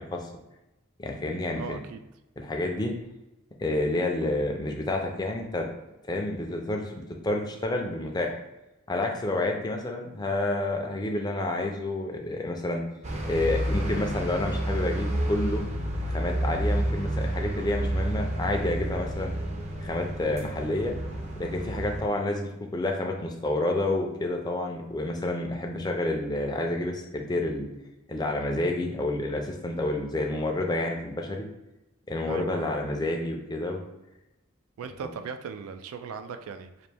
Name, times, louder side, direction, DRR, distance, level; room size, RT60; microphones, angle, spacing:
voice 1, 1.0-1.8 2.4-2.9 3.6-5.7 6.1-8.4 8.9-12.8 13.2-15.6 16.1-19.3 19.8-20.9 21.4-27.7 28.1-31.5 32.1-33.8, left 2 dB, 20° left, 2 dB, 0.4 m, -29 dB
voice 2, 1.5-2.0 32.2-32.7 34.8-36.9, right 5 dB, 90° right, 9 dB, 0.3 m, -38 dB
sound 1, 13.0-22.0, right 1 dB, 30° right, 0.5 m, -30 dB
4.1 x 2.5 x 3.3 m, 0.96 s
head